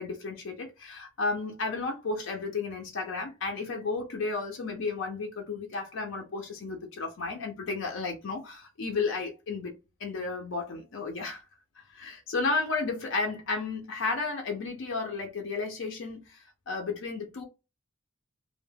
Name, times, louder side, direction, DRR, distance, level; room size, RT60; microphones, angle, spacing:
voice 1, 0.0-9.7 10.0-11.4 11.9-17.4, left 4 dB, 65° left, 0.5 m, -33 dB
2.2 x 2.1 x 3.2 m
head